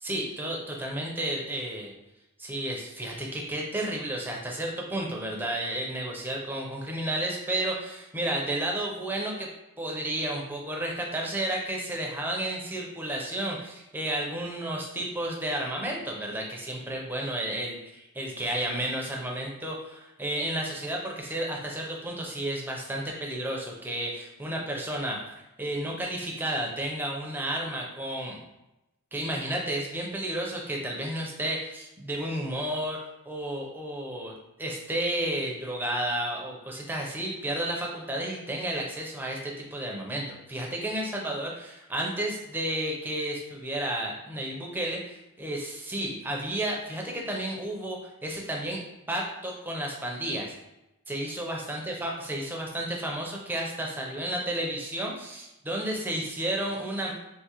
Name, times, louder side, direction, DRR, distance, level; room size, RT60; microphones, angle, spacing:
voice 1, 0.0-1.9 2.4-9.5 9.8-25.2 25.6-28.4 29.1-33.0 33.3-34.3 34.6-48.8 49.1-50.5 51.1-57.1, right 1 dB, 10° right, -1 dB, 0.5 m, -32 dB
3.6 x 2.5 x 2.9 m, 0.95 s
head